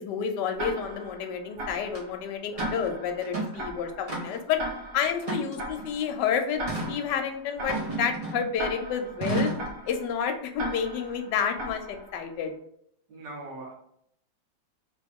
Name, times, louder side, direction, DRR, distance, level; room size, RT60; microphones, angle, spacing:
voice 1, 0.0-4.6 4.9-9.5 9.9-12.5, left 7 dB, 75° left, 5 dB, 1.2 m, -30 dB
Tick-tock, 0.6-12.4, right 1 dB, 60° right, 1.6 m, -39 dB
sound 1, 1.9-2.0 2.6-2.8 3.2-3.6 4.1-4.5 5.2-5.9 6.7-7.0 7.7-8.5 9.2-9.7, right 2 dB, 25° right, 0.8 m, -31 dB
voice 2, 13.1-13.7, right 2 dB, 80° right, -3 dB, 1.9 m, -40 dB
3.6 x 3.0 x 3.5 m, 0.69 s
omnidirectional pair, 2.0 m